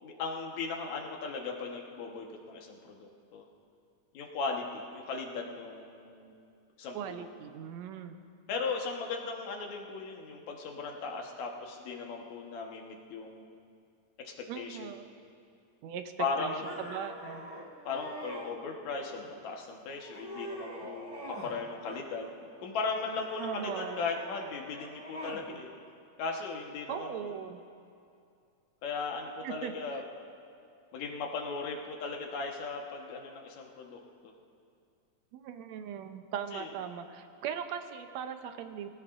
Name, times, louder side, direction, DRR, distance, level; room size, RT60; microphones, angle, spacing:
voice 1, 0.0-3.4 4.1-6.3 6.8-7.3 8.5-13.4 14.2-15.0 16.2-16.9 17.9-25.7 26.2-27.3 28.8-30.0 30.9-34.3 36.5-36.7, left 4 dB, 70° left, 0 dB, 2.6 m, -37 dB
voice 2, 6.9-8.2 14.5-15.1 15.8-17.5 23.4-24.0 26.9-27.6 29.4-29.7 35.3-38.9, right 8 dB, 70° right, 7 dB, 1.9 m, -39 dB
sound 1, 16.6-18.5 19.1-19.6 20.0-21.6 21.9-22.6 23.1-25.5, right 1 dB, 10° right, 1.3 m, -44 dB
24.0 x 15.5 x 2.6 m, 2.5 s
omnidirectional pair, 3.5 m